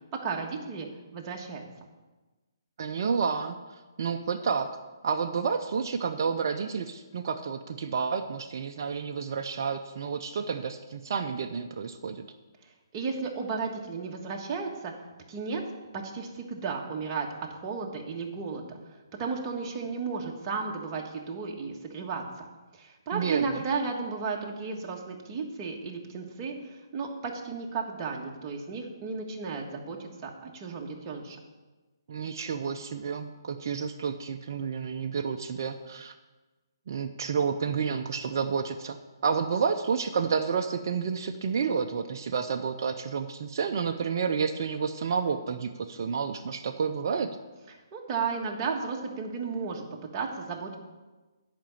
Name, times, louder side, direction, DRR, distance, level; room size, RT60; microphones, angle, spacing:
voice 1, 0.2-1.6 12.9-14.9 15.3-15.6 15.9-18.8 19.2-22.5 22.7-31.4 47.7-49.8 50.1-50.8, right 5 dB, 30° right, 0 dB, 1.5 m, -34 dB
voice 2, 2.8-3.6 4.0-4.7 5.0-12.2 23.1-23.6 32.1-36.1 36.9-39.0 39.2-47.3, right 6 dB, 50° right, 4 dB, 0.6 m, -30 dB
10.0 x 5.1 x 7.1 m, 1.2 s
figure-of-eight pair, 140°, 2 cm